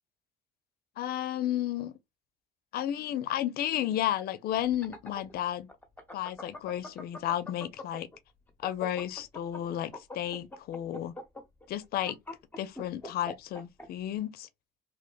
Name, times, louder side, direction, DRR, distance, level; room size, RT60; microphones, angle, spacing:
voice 1, 1.0-1.9 2.7-5.7 6.1-8.1 8.6-11.1 11.7-12.2 12.6-14.5, left 12 dB, 65° left, 0.5 m, -32 dB
sound 1, 4.6-8.2 8.5-13.9, left 2 dB, 10° left, 1.0 m, -42 dB
3.2 x 2.1 x 3.8 m
cardioid pair, 110°, 17 cm